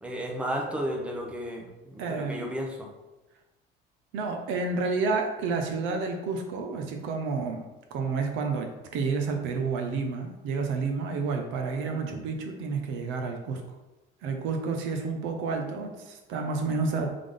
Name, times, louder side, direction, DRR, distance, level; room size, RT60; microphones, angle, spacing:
voice 1, 0.0-2.9 12.0-12.2, equal, 5° right, 0 dB, 0.5 m, -33 dB
voice 2, 2.0-2.5 4.1-13.6 14.2-17.1, right 4 dB, 80° right, 3 dB, 0.8 m, -30 dB
3.8 x 3.6 x 3.4 m, 1.0 s
cardioid pair, 175°, 20 cm